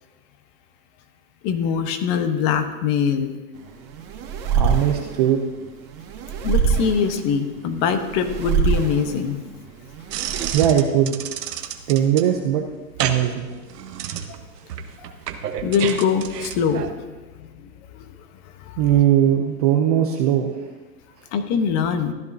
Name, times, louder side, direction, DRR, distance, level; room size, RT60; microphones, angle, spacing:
voice 1, 1.4-3.3 6.4-9.4 14.3-14.4 15.6-16.9 17.4-17.5 17.9-18.0 18.7-18.8 21.3-22.1, left 6 dB, 35° left, 8 dB, 1.0 m, -22 dB
sound 1, 3.6-10.5, right 6 dB, 40° right, 1.9 m, -25 dB
voice 2, 4.4-5.4 10.5-11.1 11.9-12.6 13.0-13.5 18.8-20.6, right 10 dB, 25° right, 3 dB, 0.4 m, -19 dB
sound 2, 10.1-16.9, right 9 dB, 75° right, 1.2 m, -31 dB
14.5 x 10.5 x 2.7 m, 1.2 s
hypercardioid pair, 135°, 48 cm